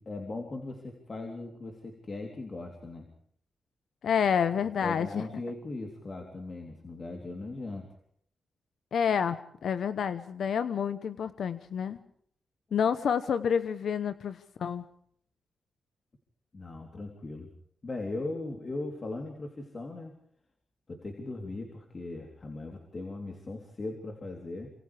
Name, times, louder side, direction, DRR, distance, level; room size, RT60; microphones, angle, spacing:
voice 1, 0.0-3.1 4.8-7.9 16.5-17.5 17.8-20.1 20.9-24.7, left 2 dB, 35° left, 2 dB, 3.5 m, -38 dB
voice 2, 4.0-5.2 8.9-12.0 12.7-14.8, left 7 dB, 75° left, 12 dB, 0.9 m, -29 dB
28.5 x 26.5 x 3.5 m, 0.65 s
wide cardioid pair, 130°, 0 cm